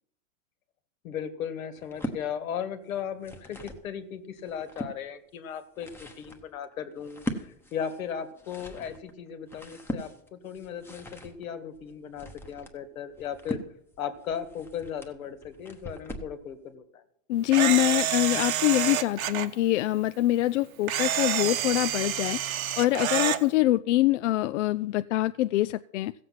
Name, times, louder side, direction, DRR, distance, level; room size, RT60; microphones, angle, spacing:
voice 1, 1.0-13.6 14.0-17.0, left 8 dB, 75° left, 11 dB, 1.9 m, -37 dB
sound 1, 1.8-2.2 3.0-3.9 4.3-5.0 5.6-16.4, left 1 dB, 5° left, 0.9 m, -40 dB
voice 2, 17.3-22.4 22.8-26.1, left 16 dB, 60° left, 13 dB, 0.5 m, -24 dB
Camera, 17.5-19.5 20.9-23.4, right 11 dB, 80° right, 1.2 m, -28 dB
15.5 x 7.6 x 5.8 m, 0.71 s
supercardioid pair, 145°, 41 cm